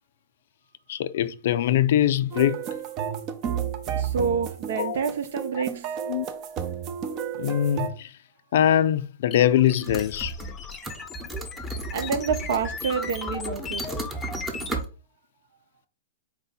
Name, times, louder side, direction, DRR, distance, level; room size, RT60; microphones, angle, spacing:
voice 1, 0.9-2.6 4.7-5.0 6.1-6.3 7.4-8.1 8.5-10.3, left 11 dB, 65° left, 0.4 m, -22 dB
sound 1, 2.3-7.9, right 8 dB, 35° right, 0.6 m, -32 dB
voice 2, 3.9-5.9 11.4-11.5 11.9-13.9, right 6 dB, 70° right, 0.9 m, -28 dB
sound 2, 9.3-14.8, left 5 dB, 20° left, 0.6 m, -37 dB
sound 3, 9.8-10.6 10.8-14.9, right 3 dB, 10° right, 0.9 m, -35 dB
4.4 x 2.7 x 4.1 m
hypercardioid pair, 135°, 0 cm